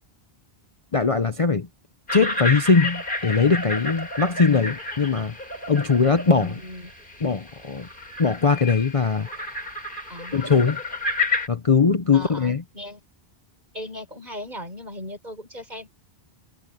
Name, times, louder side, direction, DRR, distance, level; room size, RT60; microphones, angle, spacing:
voice 1, 0.9-1.7 2.1-5.4 5.7-6.5 7.2-7.9 8.2-9.3 10.3-10.8 11.5-12.6, left 4 dB, 35° left, 0.8 m, -20 dB
sound 1, 2.1-11.5, left 2 dB, 50° left, 6.5 m, -31 dB
voice 2, 6.3-6.9 10.1-10.6 12.1-13.0 13.7-15.9, left 1 dB, 45° right, 7.0 m, -38 dB
omnidirectional pair, 1.1 m